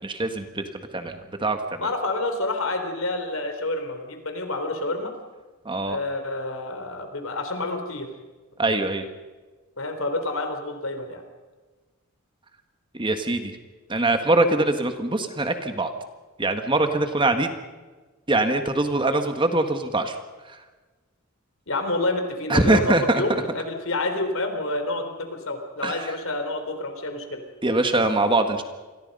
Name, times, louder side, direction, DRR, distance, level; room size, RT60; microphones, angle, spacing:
voice 1, 0.0-1.9 5.7-6.0 8.6-9.1 12.9-13.6 13.9-15.9 16.4-17.5 18.3-20.2 20.5-20.6 22.5-23.4 25.8-26.1 27.6-28.6, right 2 dB, 25° right, 7 dB, 1.7 m, -23 dB
voice 2, 1.8-5.1 5.9-8.1 9.8-11.2 21.7-27.4, left 2 dB, 70° left, 6 dB, 3.8 m, -28 dB
28.5 x 22.0 x 5.5 m, 1.3 s
head